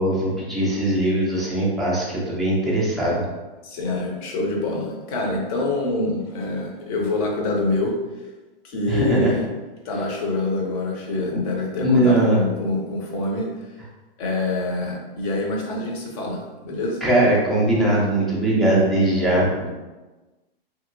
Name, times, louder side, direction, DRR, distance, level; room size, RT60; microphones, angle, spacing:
voice 1, 0.0-3.2 8.9-9.4 11.8-12.4 17.0-19.7, right 1 dB, ahead, -7 dB, 0.4 m, -20 dB
voice 2, 3.6-7.9 8.6-9.4 9.8-13.5 14.2-17.0, left 2 dB, 40° left, 0 dB, 0.7 m, -26 dB
2.9 x 2.7 x 2.6 m, 1.2 s
hypercardioid pair, 135°, 29 cm